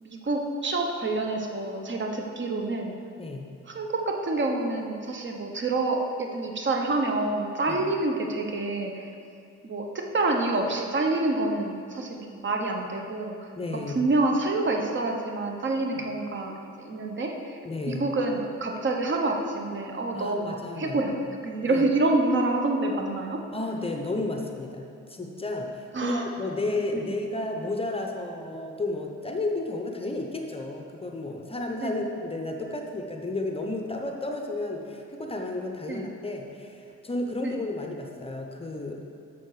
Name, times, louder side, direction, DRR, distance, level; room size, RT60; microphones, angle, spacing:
voice 1, 0.0-2.9 3.7-9.1 9.6-13.5 13.9-17.6 17.9-21.2 21.4-23.4 25.9-26.3 26.9-27.0 31.8-32.0 35.9-36.1 37.4-37.6, right 2 dB, 40° right, 2 dB, 1.0 m, -27 dB
voice 2, 13.6-14.1 16.0-16.1 17.6-18.1 20.1-21.1 21.7-21.8 23.5-39.0, left 2 dB, 20° left, 2 dB, 0.8 m, -32 dB
7.6 x 6.8 x 4.9 m, 2.5 s
cardioid pair, 90°, 30 cm